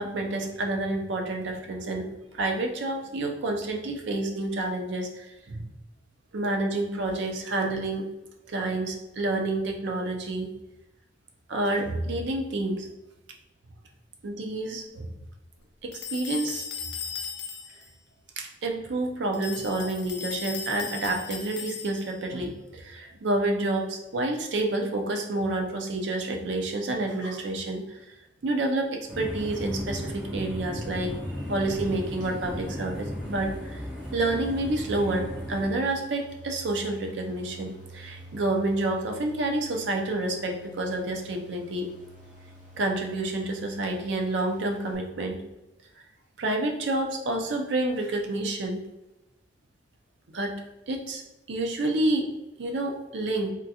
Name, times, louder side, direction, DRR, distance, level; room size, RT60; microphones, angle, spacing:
voice 1, 0.0-5.7 6.3-8.1 8.5-10.5 11.5-12.9 14.2-15.1 15.8-16.7 18.4-27.8 28.4-31.2 31.5-33.8 34.1-41.9 42.8-45.4 46.4-48.8 50.3-50.5 50.9-51.2 51.5-52.3 52.6-53.5, right 2 dB, 90° right, 3 dB, 0.5 m, -29 dB
sound 1, 15.9-17.9 19.3-22.2, left 6 dB, 80° left, 0.5 m, -37 dB
sound 2, 29.1-35.7, equal, 5° right, 0.8 m, -36 dB
sound 3, 30.9-44.9, right 1 dB, 45° right, 0.8 m, -46 dB
3.6 x 2.2 x 2.8 m, 0.94 s
head